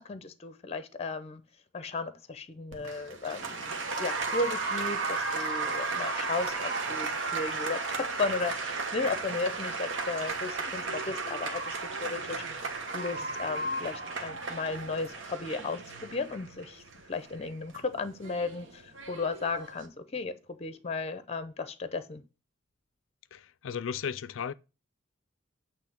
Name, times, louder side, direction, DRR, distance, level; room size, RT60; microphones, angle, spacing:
voice 1, 0.0-1.4 1.7-22.2, left 3 dB, 30° left, 0.6 m, -35 dB
Applause, 2.7-19.8, right 3 dB, 65° right, 1.2 m, -35 dB
voice 2, 23.3-24.5, left 7 dB, 75° left, 0.4 m, -35 dB
8.4 x 3.2 x 5.8 m
head